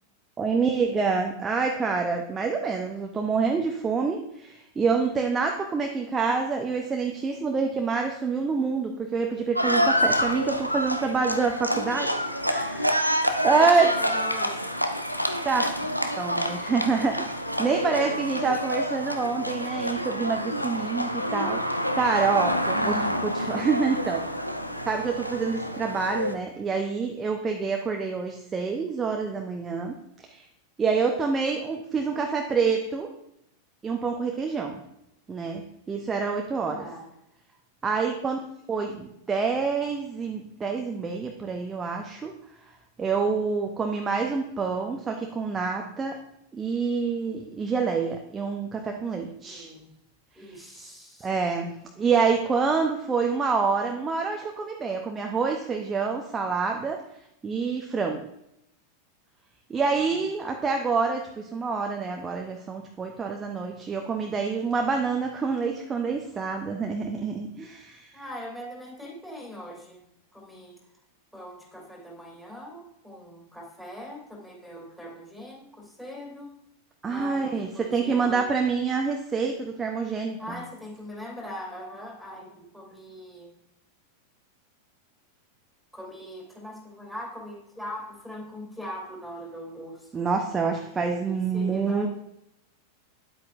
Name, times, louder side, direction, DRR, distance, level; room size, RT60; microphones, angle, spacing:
voice 1, 0.4-12.1 12.4-13.9 15.4-15.7 16.2-21.6 21.9-24.2 24.9-30.4 30.8-33.1 33.8-34.8 35.3-35.6 35.9-36.8 37.8-38.4 38.7-42.3 43.0-46.2 46.5-49.7 50.5-50.9 51.2-57.0 57.4-58.3 59.7-68.1 77.0-80.6 90.1-92.1, right 5 dB, 20° right, 2 dB, 0.7 m, -27 dB
Livestock farm animals working animals, 9.5-26.4, equal, 90° left, 0.6 m, -28 dB
voice 2, 13.6-14.7 22.7-23.2 36.7-37.1 49.4-49.9 50.3-51.3 59.7-60.0 68.1-70.0 70.3-70.8 71.3-76.5 77.1-78.5 80.4-83.5 85.9-90.3 90.8-92.1, equal, ahead, -2 dB, 3.0 m, -41 dB
9.6 x 8.4 x 2.6 m, 0.80 s
figure-of-eight pair, 90°, 0 cm